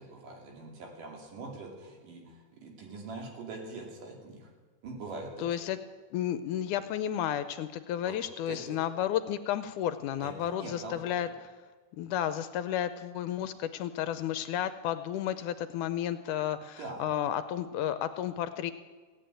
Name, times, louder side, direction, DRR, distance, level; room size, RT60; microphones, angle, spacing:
voice 1, 0.0-4.5 4.8-5.5 8.0-8.2 8.5-8.8 10.2-11.2 16.8-17.1, right 3 dB, 75° right, 1 dB, 4.3 m, -43 dB
voice 2, 5.4-5.8 6.1-11.3 12.0-18.7, left 10 dB, 80° left, 11 dB, 2.0 m, -32 dB
17.0 x 9.3 x 9.0 m, 1.4 s
omnidirectional pair, 3.8 m